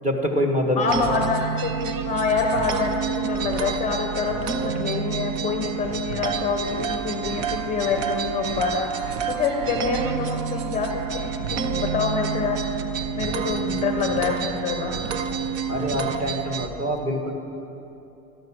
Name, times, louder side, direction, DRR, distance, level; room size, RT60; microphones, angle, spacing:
voice 1, 0.0-1.0 15.7-17.3, equal, 15° right, 2 dB, 1.5 m, -25 dB
voice 2, 0.8-8.9 9.3-12.6 13.2-15.0, left 5 dB, 15° left, 3 dB, 0.8 m, -26 dB
sound 1, 0.9-16.7, right 6 dB, 45° right, 1.0 m, -28 dB
17.5 x 13.0 x 6.2 m, 2.9 s
cardioid pair, 180°, 43 cm